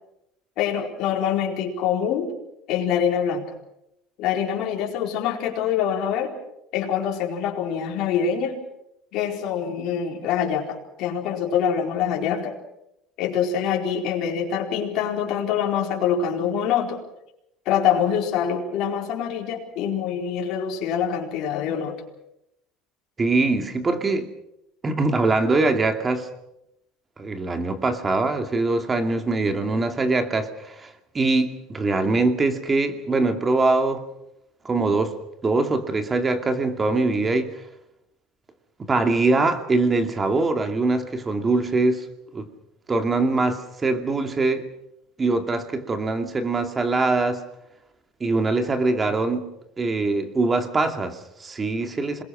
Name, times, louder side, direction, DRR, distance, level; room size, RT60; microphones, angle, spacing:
voice 1, 0.6-2.3 2.7-3.5 4.2-6.3 6.7-8.6 9.1-12.5 13.2-17.0 17.6-22.0, left 8 dB, 65° left, 0 dB, 4.5 m, -25 dB
voice 2, 23.2-24.3 24.8-26.3 27.2-34.0 34.6-37.6 38.8-42.1 42.3-42.5 42.9-44.7 45.2-47.4 48.2-49.5 49.8-52.2, right 3 dB, 25° right, 7 dB, 2.5 m, -23 dB
27.0 x 21.0 x 6.2 m, 0.81 s
supercardioid pair, 105°, 0 cm